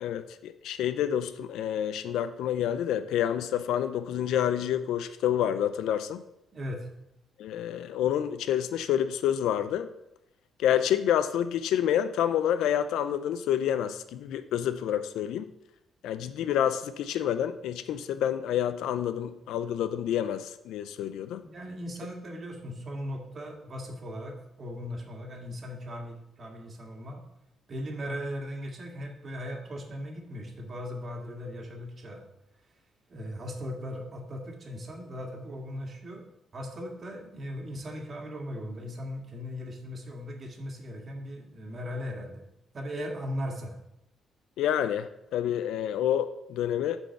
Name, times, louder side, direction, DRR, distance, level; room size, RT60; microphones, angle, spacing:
voice 1, 0.0-6.2 7.4-9.9 10.6-15.5 16.0-21.4 44.6-47.0, left 10 dB, 85° left, 12 dB, 0.4 m, -28 dB
voice 2, 6.5-6.9 21.3-27.2 27.7-32.2 33.1-36.3 36.5-42.4 42.7-43.7, equal, 40° right, 1 dB, 1.9 m, -38 dB
7.6 x 4.4 x 7.0 m, 0.83 s
cardioid pair, 90°, 0 cm